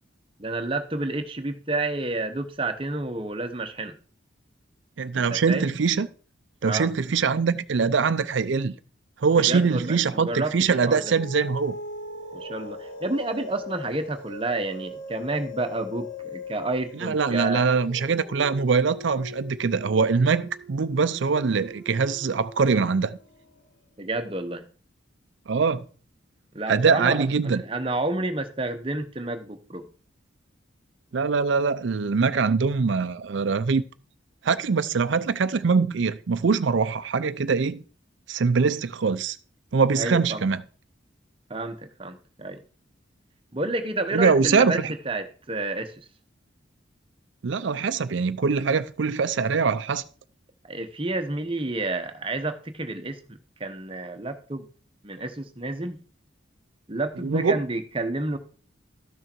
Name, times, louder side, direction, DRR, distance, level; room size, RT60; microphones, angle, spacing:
voice 1, 0.4-3.9 5.3-5.7 6.6-6.9 9.3-11.0 12.3-17.6 24.0-24.7 26.5-29.9 39.9-40.4 41.5-42.6 43.5-46.0 50.6-54.7 55.0-56.0 56.9-58.4, right 2 dB, 25° right, 1.0 m, -30 dB
voice 2, 5.0-6.1 6.6-8.7 9.2-11.8 17.0-23.2 25.5-25.8 26.7-27.6 31.1-33.8 34.4-37.8 38.3-39.4 39.7-40.6 44.1-44.9 47.4-50.0 57.2-57.6, right 5 dB, 70° right, 0.5 m, -23 dB
sound 1, 10.8-23.6, left 2 dB, 65° left, 1.9 m, -40 dB
13.0 x 6.4 x 4.5 m
head